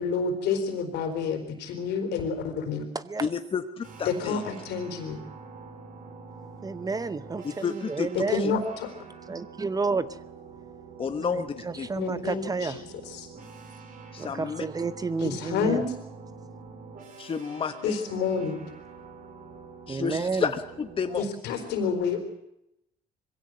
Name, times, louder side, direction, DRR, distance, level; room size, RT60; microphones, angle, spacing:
voice 1, 0.0-2.8 4.1-5.2 8.3-8.9 12.0-13.3 15.2-15.9 17.8-18.7 21.2-22.3, left 5 dB, 80° left, 6 dB, 4.2 m, -29 dB
voice 2, 3.2-4.4 7.4-8.1 8.4-8.5 11.0-11.9 14.1-14.6 17.2-18.0 19.9-21.2, left 6 dB, 30° left, 8 dB, 1.1 m, -31 dB
sound 1, 3.8-21.2, right 4 dB, 50° right, 3.7 m, -46 dB
voice 3, 6.6-8.5 9.3-10.1 11.2-12.8 14.2-15.8 19.9-20.5, right 4 dB, 20° right, 15 dB, 0.8 m, -31 dB
21.5 x 16.5 x 7.8 m, 0.84 s
cardioid pair, 110°, 17 cm